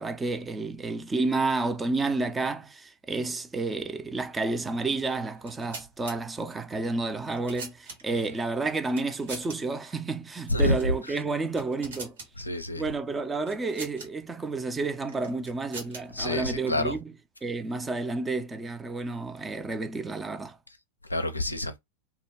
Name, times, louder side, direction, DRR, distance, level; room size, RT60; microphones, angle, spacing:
voice 1, 0.0-12.2 12.7-17.1 17.4-20.6, right 3 dB, 15° right, 0.4 m, -30 dB
sound 1, 5.3-6.2 7.0-8.3 8.9-9.6 9.8-10.0 10.7-11.0 11.3-12.3 13.5-14.1 15.1-16.2, right 3 dB, 65° right, 1.3 m, -42 dB
voice 2, 10.5-10.9 12.4-12.8 16.1-17.0 21.1-21.8, left 1 dB, 85° left, 0.4 m, -27 dB
2.8 x 2.2 x 3.5 m
figure-of-eight pair, 90°, 0 cm